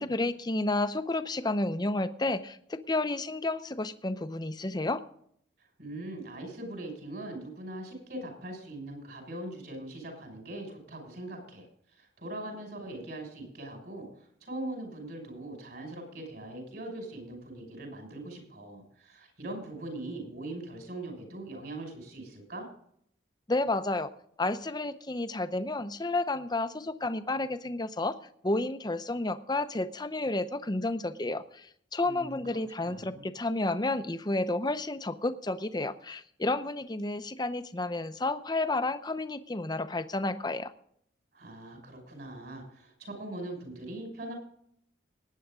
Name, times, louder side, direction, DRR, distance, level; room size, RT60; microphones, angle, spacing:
voice 1, 0.0-5.0 23.5-24.1 24.4-28.1 28.4-40.7, left 2 dB, 20° left, 11 dB, 0.7 m, -31 dB
voice 2, 5.6-22.7 32.0-32.4 32.8-33.3 41.3-44.3, right 1 dB, 55° right, 3 dB, 6.0 m, -41 dB
19.0 x 9.3 x 3.7 m, 0.67 s
head